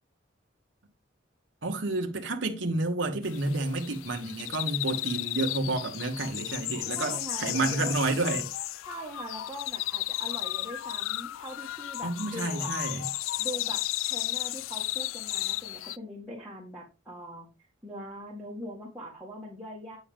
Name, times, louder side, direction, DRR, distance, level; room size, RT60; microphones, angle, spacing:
voice 1, 1.6-8.5 12.0-13.0, right 2 dB, 70° right, 1.3 m, -30 dB
sound 1, 3.2-16.0, left 16 dB, 85° left, 0.3 m, -34 dB
voice 2, 6.9-8.0 8.8-12.7 13.4-17.5 17.8-20.0, equal, 5° right, 2.0 m, -42 dB
8.8 x 6.3 x 3.6 m
head